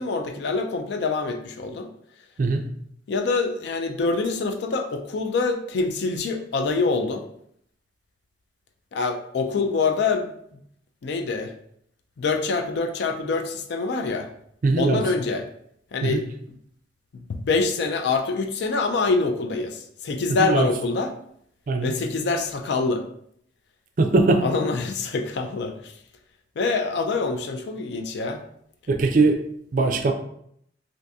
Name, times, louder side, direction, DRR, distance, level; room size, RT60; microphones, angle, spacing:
voice 1, 0.0-1.9 3.1-7.2 8.9-10.3 11.0-11.5 12.2-14.3 14.8-15.5 15.9-16.2 17.1-21.1 21.8-23.0 24.4-25.9 26.6-28.4, left 4 dB, 65° left, 5 dB, 0.4 m, -25 dB
voice 2, 14.6-15.0 16.0-16.2 20.4-20.7 21.7-21.9 24.0-24.4 28.9-29.4 29.7-30.1, right 3 dB, 45° right, 5 dB, 0.3 m, -20 dB
3.4 x 2.5 x 2.6 m, 0.69 s
head